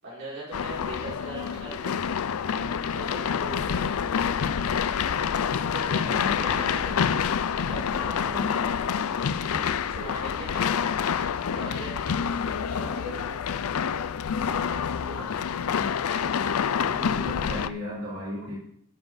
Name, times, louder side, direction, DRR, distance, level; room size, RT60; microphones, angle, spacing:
voice 1, 0.0-2.2 2.6-4.3 5.4-7.0 7.5-8.8 9.1-10.7 11.1-13.4 14.3-15.3 16.1-16.4, right 1 dB, 60° right, -8 dB, 5.2 m, -41 dB
sound 1, 0.5-17.7, left 7 dB, 75° left, 0.5 m, -27 dB
voice 2, 6.0-6.8 8.2-8.5 15.1-15.9 16.8-18.6, equal, 80° right, -6 dB, 3.8 m, -37 dB
17.0 x 7.1 x 4.1 m, 0.68 s
head